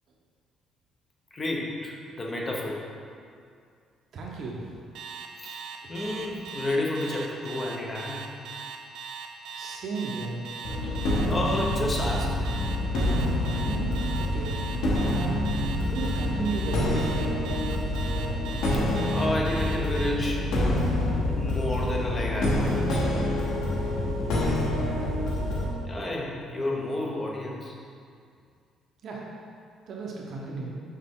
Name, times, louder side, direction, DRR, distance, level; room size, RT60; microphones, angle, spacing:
voice 1, 1.3-2.8 5.4-5.6 5.9-8.3 10.8-10.9 11.3-12.5 18.7-18.8 19.1-20.5 21.3-23.1 25.8-27.8, left 1 dB, 20° left, -1 dB, 0.9 m, -31 dB
voice 2, 4.1-4.7 9.5-10.4 13.6-13.9 14.2-14.6 15.1-17.3 24.4-25.3 29.0-29.2 29.9-30.7, right 4 dB, 50° right, -3 dB, 1.0 m, -35 dB
Alarm, 4.9-20.1, right 6 dB, 70° right, 0.7 m, -39 dB
sound 1, 10.6-25.7, left 1 dB, 80° left, 1.2 m, -27 dB
6.5 x 5.7 x 3.7 m, 2.3 s
cardioid pair, 165°, 0 cm